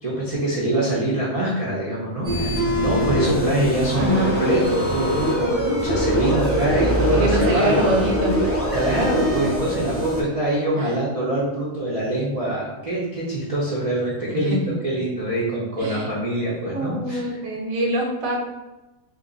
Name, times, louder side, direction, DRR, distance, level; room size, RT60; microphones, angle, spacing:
voice 1, 0.0-7.8 8.7-17.4, right 1 dB, 40° right, -7 dB, 0.5 m, -24 dB
sound 1, 2.2-10.2, equal, 20° left, 0.3 m, -23 dB
voice 2, 4.0-4.3 7.1-8.5 10.7-10.9 14.3-14.8 15.8-16.1 16.7-18.4, equal, 80° right, -1 dB, 1.2 m, -25 dB
2.9 x 2.6 x 3.8 m, 1.0 s
omnidirectional pair, 1.4 m